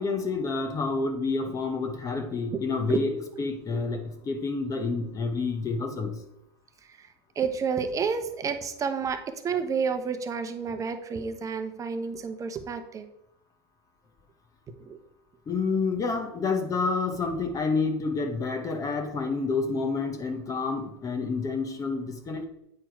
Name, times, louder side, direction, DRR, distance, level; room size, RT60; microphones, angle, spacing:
voice 1, 0.0-3.1 3.4-6.2 15.5-22.4, left 4 dB, 25° left, 5 dB, 1.0 m, -29 dB
voice 2, 7.3-13.1 14.8-15.0, right 6 dB, 25° right, 8 dB, 0.9 m, -30 dB
8.6 x 4.4 x 4.6 m, 0.80 s
hypercardioid pair, 115°, 13 cm